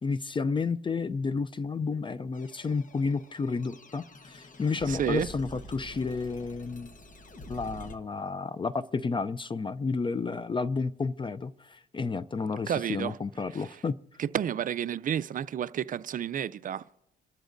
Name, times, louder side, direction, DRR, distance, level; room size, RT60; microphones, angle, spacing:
voice 1, 0.0-6.9 7.5-13.9, left 4 dB, 25° left, 0.4 m, -31 dB
sound 1, 2.3-7.9, equal, 40° left, 1.2 m, -47 dB
voice 2, 4.9-5.3 12.7-13.2 13.5-13.8 14.2-17.0, right 9 dB, 45° right, 0.4 m, -31 dB
27.5 x 13.5 x 2.6 m
cardioid pair, 90°, 20 cm